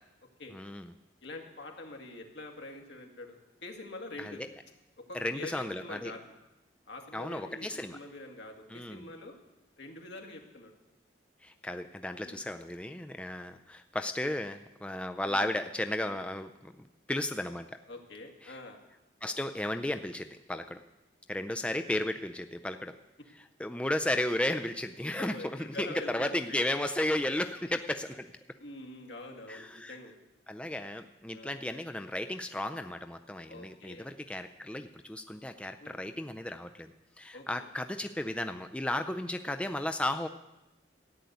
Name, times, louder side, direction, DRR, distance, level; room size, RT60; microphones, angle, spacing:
voice 1, 0.5-0.9 4.2-4.5 5.1-6.1 7.1-8.0 8.7-9.1 11.4-16.7 17.1-17.7 18.4-18.6 19.2-20.8 21.3-23.0 23.4-28.3 29.5-30.0 30.5-36.9 37.2-40.3, left 1 dB, 5° left, 7 dB, 0.4 m, -34 dB
voice 2, 1.2-4.4 5.0-6.3 6.9-9.4 9.8-10.7 12.2-12.4 16.1-16.2 17.9-18.8 25.2-26.8 28.6-30.2 31.3-31.6 33.5-34.1 35.8-36.0 37.3-37.7, left 2 dB, 75° left, 2 dB, 2.1 m, -45 dB
14.0 x 8.2 x 9.3 m, 0.99 s
head